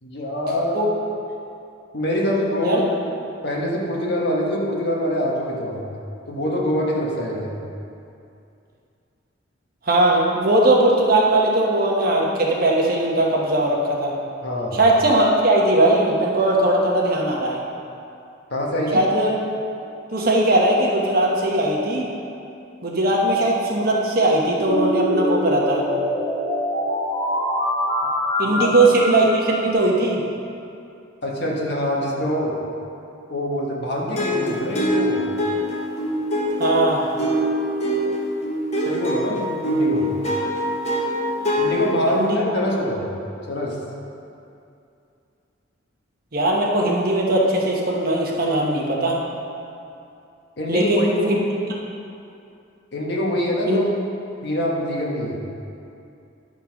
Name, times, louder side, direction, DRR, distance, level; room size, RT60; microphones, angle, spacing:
voice 1, 0.0-0.8 1.9-2.8 3.4-5.8 6.3-7.5 14.4-14.8 18.5-19.0 28.4-28.7 31.2-32.5 33.3-35.2 38.8-40.1 41.6-43.1 43.5-43.8 50.6-51.1 52.9-53.8 54.4-55.4, equal, 55° left, -3 dB, 1.4 m, -24 dB
voice 2, 9.9-14.1 14.7-17.6 18.9-19.3 20.1-22.1 22.8-25.9 28.4-30.2 36.6-37.0 42.1-42.4 46.3-49.2 50.7-51.4 53.7-53.8, right 1 dB, 50° right, -2 dB, 1.2 m, -19 dB
sound 1, 24.6-29.7, left 1 dB, 10° left, 1.8 m, -24 dB
sound 2, 34.2-42.2, equal, 35° left, 1.2 m, -24 dB
10.5 x 4.5 x 5.9 m, 2.6 s
head